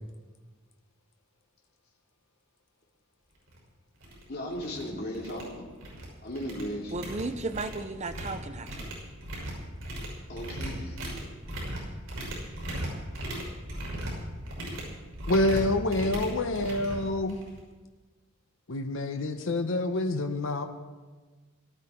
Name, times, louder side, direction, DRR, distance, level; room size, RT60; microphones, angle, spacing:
sound 1, 3.5-3.6 4.0-4.2 4.5-4.8 5.1-6.1 6.4-17.6, right 1 dB, 70° right, 5.9 m, -37 dB
voice 1, 4.3-5.7 6.2-6.9 10.3-11.0, equal, 50° left, -2 dB, 2.9 m, -36 dB
voice 2, 6.9-8.9, right 2 dB, 35° right, 9 dB, 0.8 m, -35 dB
voice 3, 15.3-17.4 18.7-20.7, left 2 dB, 70° left, 5 dB, 0.9 m, -27 dB
18.0 x 12.5 x 4.5 m, 1.3 s
head